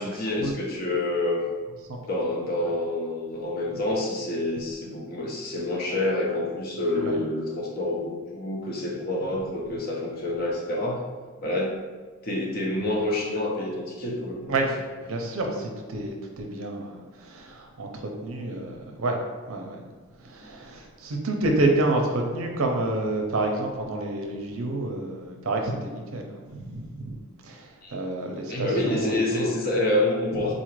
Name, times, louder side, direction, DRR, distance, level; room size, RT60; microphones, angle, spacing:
voice 1, 0.0-1.5 2.1-11.0 11.4-11.8 12.2-14.6 27.8-27.9 28.5-30.5, left 1 dB, 45° left, -2 dB, 0.6 m, -27 dB
voice 2, 15.0-19.2 19.5-19.8 20.2-27.2 27.4-29.5, right 2 dB, 75° right, 2 dB, 0.5 m, -29 dB
3.9 x 2.4 x 3.1 m, 1.4 s
head